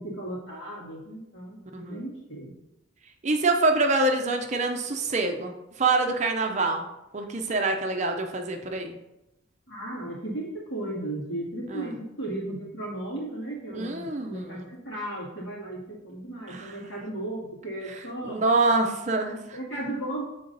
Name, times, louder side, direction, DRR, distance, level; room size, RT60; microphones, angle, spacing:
voice 1, 0.0-2.5 9.7-18.4 19.2-20.3, right 1 dB, 65° left, -5 dB, 2.4 m, -35 dB
voice 2, 1.7-2.0 3.2-6.9 7.1-8.9 11.7-11.9 13.7-14.7 16.5-16.8 18.2-19.6, right 3 dB, 35° right, 4 dB, 0.5 m, -26 dB
6.7 x 3.8 x 3.9 m, 0.92 s
head